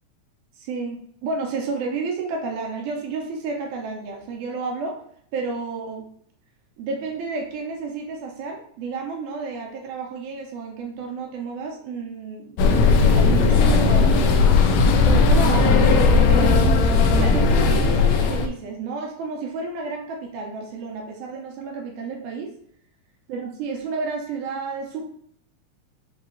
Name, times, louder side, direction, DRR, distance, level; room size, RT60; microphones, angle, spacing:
voice 1, 0.6-5.0 5.3-6.1 6.8-12.5 12.9-14.6 15.0-15.8 16.1-16.8 17.2-22.5 23.3-25.0, right 4 dB, 80° right, 1 dB, 2.2 m, -31 dB
sound 1, 12.6-18.5, left 4 dB, 80° left, 1.6 m, -17 dB
5.5 x 2.4 x 3.8 m, 0.63 s
omnidirectional pair, 3.5 m